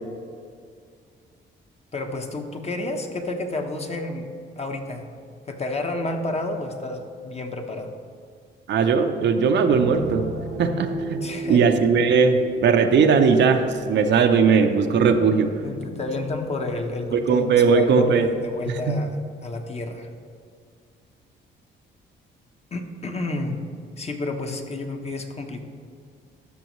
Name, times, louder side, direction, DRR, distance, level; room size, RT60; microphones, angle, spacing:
voice 1, 1.9-4.3 4.6-5.1 5.5-7.9 11.2-11.6 15.6-19.1 19.4-20.1 22.7-23.6 24.0-25.6, left 2 dB, 30° left, 4 dB, 0.9 m, -30 dB
voice 2, 8.7-10.3 10.6-15.5 17.1-18.3 18.7-19.0, right 5 dB, 65° right, 6 dB, 0.7 m, -19 dB
sound 1, 9.7-18.5, right 3 dB, 90° right, 0.9 m, -36 dB
12.5 x 6.2 x 3.1 m, 2.2 s
cardioid pair, 90°, 20 cm